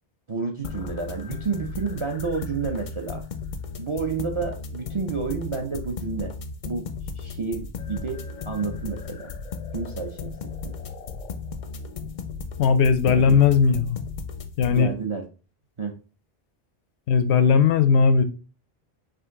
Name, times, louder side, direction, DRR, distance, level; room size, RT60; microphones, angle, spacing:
voice 1, 0.3-3.2 3.8-6.3 6.6-6.9 7.1-9.3 9.7-10.4 10.6-10.8 13.0-13.4 14.7-15.2 15.8-15.9, right 5 dB, 40° right, 3 dB, 0.5 m, -30 dB
sound 1, 0.6-14.8, left 5 dB, 55° left, 0.6 m, -35 dB
voice 2, 12.6-14.0 14.6-14.9 17.1-18.2, left 6 dB, 85° left, 10 dB, 0.9 m, -18 dB
5.0 x 2.7 x 3.6 m, 0.34 s
omnidirectional pair, 1.1 m